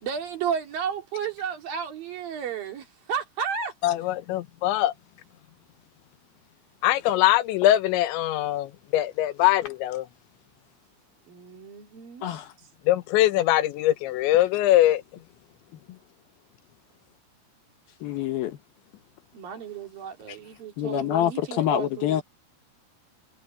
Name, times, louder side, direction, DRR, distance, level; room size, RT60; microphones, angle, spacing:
voice 1, 0.0-3.7 11.3-12.2 19.3-22.2, right 7 dB, 55° right, 4.0 m, -33 dB
voice 2, 3.8-4.9 6.8-10.0 12.9-15.0, left 14 dB, 85° left, 3.3 m, -22 dB
voice 3, 12.2-12.5 15.9-16.0 18.0-18.6 20.8-22.2, left 11 dB, 65° left, 2.7 m, -26 dB
omnidirectional pair, 5.3 m